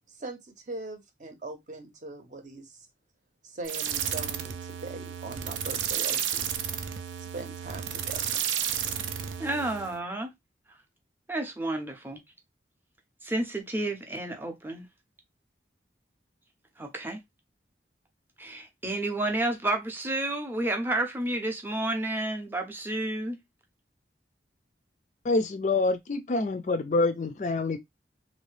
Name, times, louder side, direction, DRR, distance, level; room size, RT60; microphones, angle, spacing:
voice 1, 0.1-2.9 3.4-6.5 7.3-8.4, right 2 dB, 40° right, 0.8 m, -41 dB
sound 1, 3.6-10.0, right 9 dB, 85° right, 0.5 m, -32 dB
voice 2, 9.4-10.3 11.3-12.2 13.2-14.8 16.8-17.2 18.4-23.4, right 2 dB, 10° right, 0.6 m, -31 dB
voice 3, 25.2-27.8, left 3 dB, 40° left, 0.4 m, -26 dB
3.1 x 2.7 x 3.2 m
head